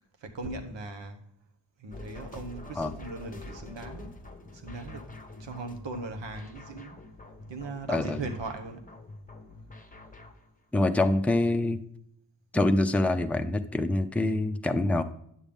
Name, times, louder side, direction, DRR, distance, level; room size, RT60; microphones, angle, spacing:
voice 1, 0.2-1.2 1.8-4.1 4.5-5.1 5.4-7.0 7.5-8.9, right 3 dB, 85° right, 5 dB, 1.1 m, -39 dB
sound 1, 1.9-10.5, left 2 dB, 20° left, 0.9 m, -46 dB
voice 2, 10.7-11.8 12.5-15.0, left 2 dB, 5° left, 6 dB, 0.5 m, -25 dB
9.1 x 6.9 x 3.6 m, 0.71 s
cardioid pair, 55°, 43 cm